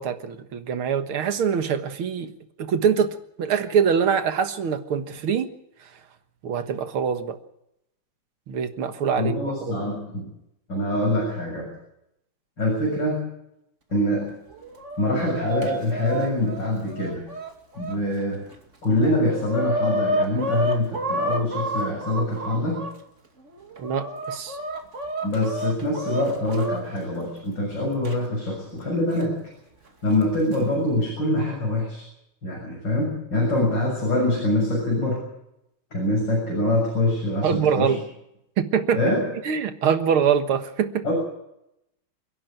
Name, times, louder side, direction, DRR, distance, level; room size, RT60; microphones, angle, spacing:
voice 1, 0.0-2.3 2.6-5.5 6.4-7.4 8.5-9.4 9.7-9.8 23.8-24.6 37.4-38.0 38.6-39.0 39.4-41.0, right 7 dB, 85° right, 9 dB, 2.3 m, -24 dB
voice 2, 9.2-10.3 10.7-11.7 12.6-13.3 13.9-14.2 15.0-17.3 17.8-18.4 18.8-22.8 25.2-29.4 30.0-32.0 32.4-35.3 35.9-38.0 38.9-39.3 41.0-41.1, left 1 dB, 60° left, -2 dB, 7.9 m, -24 dB
Chicken rooster, 14.5-18.0 18.5-18.6 18.9-22.9 23.5-26.8 28.0-28.1 29.1-29.2 30.2-30.6, right 1 dB, 35° right, 2.8 m, -29 dB
28.0 x 11.5 x 9.1 m, 0.82 s
omnidirectional pair, 2.3 m